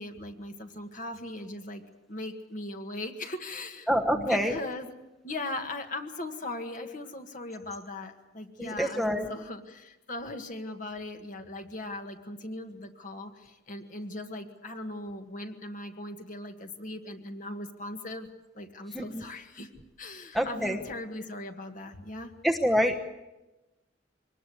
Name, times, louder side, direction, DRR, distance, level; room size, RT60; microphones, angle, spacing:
voice 1, 0.0-1.8 2.1-4.9 5.2-18.3 18.5-19.7 20.0-22.3, left 2 dB, 40° left, 5 dB, 1.9 m, -39 dB
voice 2, 3.9-4.5 8.6-9.3 18.9-19.2 20.3-20.8 22.4-23.0, equal, ahead, 5 dB, 1.1 m, -26 dB
24.0 x 19.5 x 8.1 m, 1.0 s
head